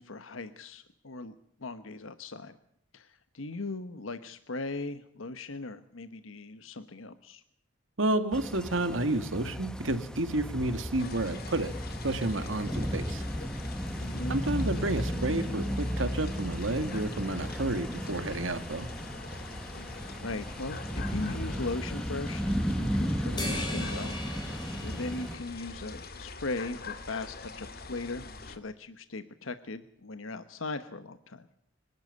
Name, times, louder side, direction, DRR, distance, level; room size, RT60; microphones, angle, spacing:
voice 1, 0.0-1.3 1.6-2.6 2.9-7.4 14.0-14.4 20.2-24.2 24.8-31.5, left 3 dB, 90° left, 11 dB, 1.1 m, -39 dB
voice 2, 8.0-11.7 12.0-13.2 14.3-18.9, right 2 dB, 70° right, 10 dB, 2.0 m, -30 dB
Storm of Doom, 8.3-25.4, equal, 5° left, 1.2 m, -34 dB
sound 1, 11.0-28.6, left 3 dB, 50° left, 2.2 m, -44 dB
sound 2, 23.4-26.1, left 2 dB, 25° left, 5.9 m, -40 dB
25.5 x 12.0 x 9.5 m, 0.73 s
head